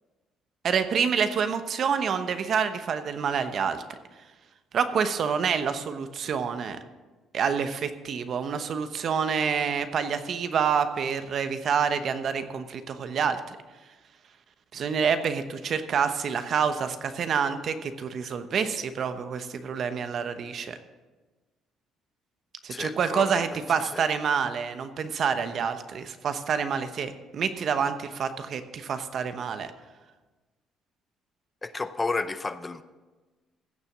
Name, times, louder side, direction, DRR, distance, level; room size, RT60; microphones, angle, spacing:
voice 1, 0.6-3.8 4.7-6.8 7.3-13.6 14.7-20.8 22.6-29.7, right 6 dB, 55° right, 9 dB, 1.0 m, -27 dB
voice 2, 22.7-23.5 23.9-24.1 31.6-32.8, left 3 dB, 20° left, 12 dB, 0.6 m, -31 dB
15.5 x 7.0 x 6.0 m, 1.3 s
cardioid pair, 105°, 0 cm